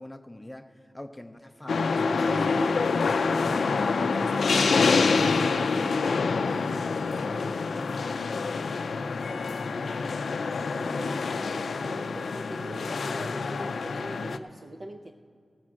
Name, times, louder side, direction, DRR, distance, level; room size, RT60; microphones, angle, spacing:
voice 1, 0.0-2.7 3.3-6.0 6.5-7.9, left 1 dB, 10° left, 8 dB, 0.6 m, -42 dB
sound 1, 1.7-14.4, left 4 dB, 80° left, 0.4 m, -26 dB
voice 2, 10.8-15.1, right 1 dB, 35° right, 3 dB, 0.5 m, -42 dB
17.0 x 6.1 x 7.5 m, 2.2 s
wide cardioid pair, 115°, 0 cm